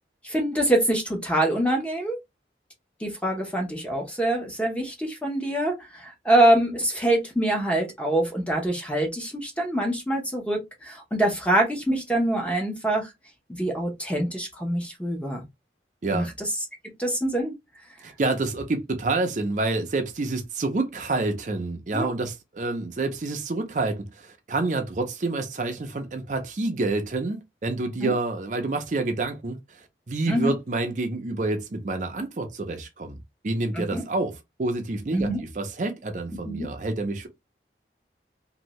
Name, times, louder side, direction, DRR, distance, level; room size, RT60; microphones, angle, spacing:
voice 1, 0.2-2.2 3.0-13.1 13.6-15.4 16.1-16.2 17.0-17.5 21.9-22.1 28.0-28.1 30.3-30.5 33.7-34.0 35.1-35.4 36.4-36.7, right 1 dB, 5° left, 0.7 m, -25 dB
voice 2, 18.0-33.2 33.4-34.3 34.6-37.3, right 2 dB, 45° right, 0.5 m, -28 dB
2.6 x 2.6 x 3.0 m
head